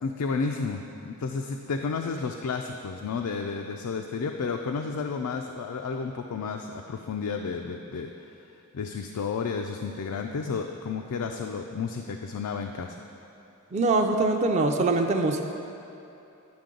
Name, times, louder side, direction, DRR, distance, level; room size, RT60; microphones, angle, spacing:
voice 1, 0.0-8.1 8.7-13.0, left 5 dB, 85° left, 3 dB, 0.4 m, -32 dB
voice 2, 13.7-15.4, right 3 dB, 30° right, 4 dB, 0.4 m, -23 dB
10.5 x 5.8 x 3.8 m, 2.8 s
head